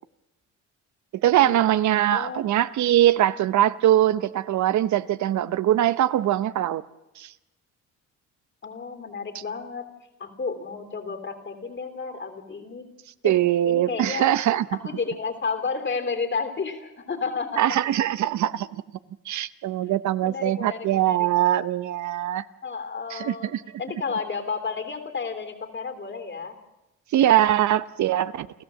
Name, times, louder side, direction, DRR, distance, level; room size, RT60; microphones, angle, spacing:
voice 1, 1.2-6.8 7.2-7.3 13.2-14.6 17.6-18.7 19.3-22.4 23.1-23.6 27.1-28.5, right 12 dB, 70° right, 15 dB, 0.8 m, -22 dB
voice 2, 2.1-2.4 8.6-9.9 10.2-12.9 13.2-14.3 14.7-17.6 20.2-21.3 22.6-23.5 23.8-26.5, left 5 dB, 40° left, 7 dB, 3.2 m, -32 dB
29.5 x 14.0 x 7.5 m, 0.97 s
cardioid pair, 90°, 30 cm